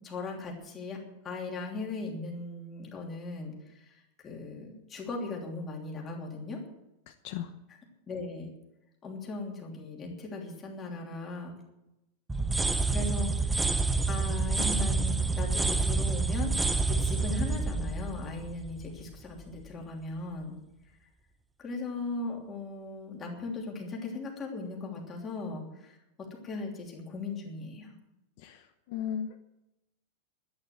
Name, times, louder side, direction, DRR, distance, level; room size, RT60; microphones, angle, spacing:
voice 1, 0.0-6.6 8.1-8.5 9.0-11.5 12.9-13.7 14.1-16.5 16.9-20.5 21.6-27.9, left 3 dB, 15° left, 0 dB, 3.1 m, -38 dB
sound 1, 12.3-19.2, right 3 dB, 5° right, 0.6 m, -28 dB
voice 2, 28.4-29.4, left 9 dB, 45° left, 6 dB, 0.9 m, -36 dB
12.0 x 11.0 x 7.7 m, 0.90 s
supercardioid pair, 175°, 0 cm